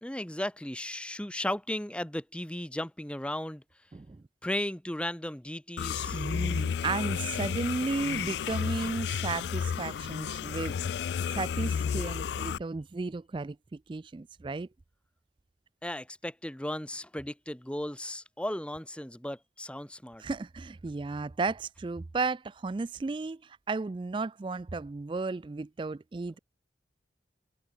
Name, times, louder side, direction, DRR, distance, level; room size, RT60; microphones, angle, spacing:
voice 1, 0.0-3.6 4.4-6.2 15.8-20.2, left 1 dB, 5° left, 0.9 m, -35 dB
voice 2, 3.9-4.2 6.1-10.8 11.3-14.7 20.2-26.4, right 3 dB, 25° right, 0.3 m, -34 dB
sound 1, 5.8-12.6, left 7 dB, 70° left, 0.3 m, -32 dB
head